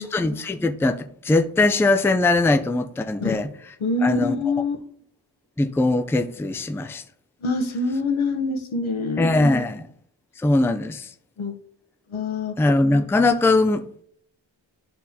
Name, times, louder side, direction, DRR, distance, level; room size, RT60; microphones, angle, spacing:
voice 1, 0.0-3.5 4.0-4.4 5.6-7.0 9.2-9.8 10.4-11.1 12.6-14.0, left 2 dB, 5° left, 0.4 m, -21 dB
voice 2, 3.8-4.8 7.4-9.5 11.4-11.5 12.1-12.6, left 3 dB, 80° left, 1.0 m, -25 dB
12.0 x 4.0 x 2.8 m
wide cardioid pair, 55°, 48 cm